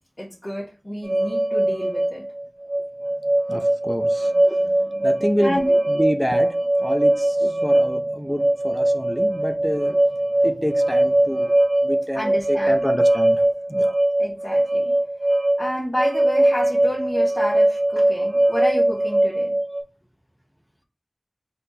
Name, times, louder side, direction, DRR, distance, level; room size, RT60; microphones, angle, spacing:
voice 1, 0.2-2.2 5.4-5.7 12.1-12.8 14.2-14.9 15.6-19.5, equal, 35° left, -6 dB, 1.5 m, -29 dB
sound 1, 1.0-19.8, right 1 dB, 45° right, 0.7 m, -21 dB
voice 2, 3.5-11.5 11.8-14.0, equal, 5° left, 5 dB, 0.7 m, -28 dB
4.3 x 2.6 x 4.0 m, 0.32 s
wide cardioid pair, 50°, 0 cm